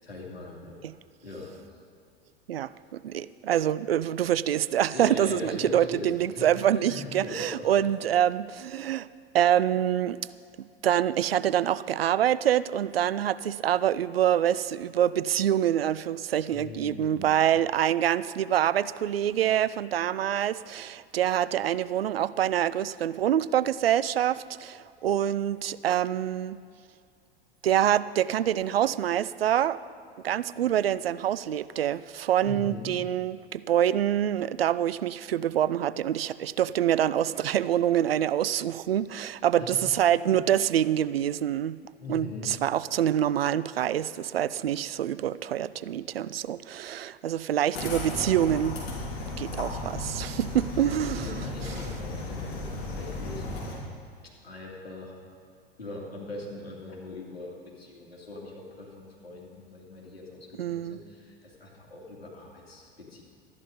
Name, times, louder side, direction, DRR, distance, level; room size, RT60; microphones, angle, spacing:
voice 1, 0.0-0.8 1.2-1.8 4.9-7.7 16.5-17.4 32.4-32.9 39.6-40.4 42.0-42.5 51.1-53.5 54.4-55.1 55.8-63.2, left 3 dB, 85° left, -3 dB, 2.8 m, -41 dB
voice 2, 2.5-9.1 9.3-10.2 10.8-26.6 27.6-29.8 30.2-41.8 42.1-48.8 49.4-51.5 60.6-61.0, right 10 dB, 75° right, 17 dB, 0.4 m, -26 dB
sound 1, 47.7-53.8, left 2 dB, 55° left, 3.7 m, -35 dB
13.0 x 11.0 x 5.2 m, 2.3 s
figure-of-eight pair, 85°, 30 cm